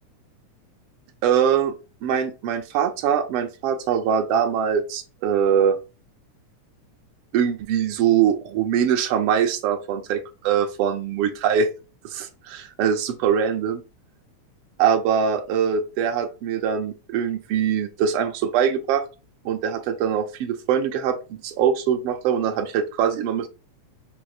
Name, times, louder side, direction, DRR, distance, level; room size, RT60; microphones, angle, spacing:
voice 1, 1.2-1.7 2.0-5.8 7.3-11.7 12.0-13.8 14.8-19.0 19.4-21.2 21.4-23.5, right 8 dB, 70° right, 5 dB, 1.4 m, -22 dB
6.9 x 3.0 x 2.3 m, 0.31 s
omnidirectional pair, 3.4 m